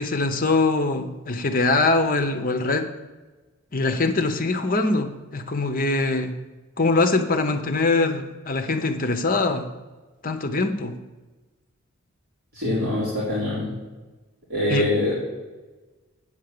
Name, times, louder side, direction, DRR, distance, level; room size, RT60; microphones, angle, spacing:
voice 1, 0.0-2.9 3.7-6.3 6.8-9.7 10.2-11.0 14.7-14.8, left 3 dB, 40° left, 8 dB, 0.8 m, -23 dB
voice 2, 12.5-13.8 14.5-15.2, left 2 dB, 45° right, -8 dB, 3.2 m, -24 dB
8.7 x 7.3 x 6.6 m, 1.2 s
head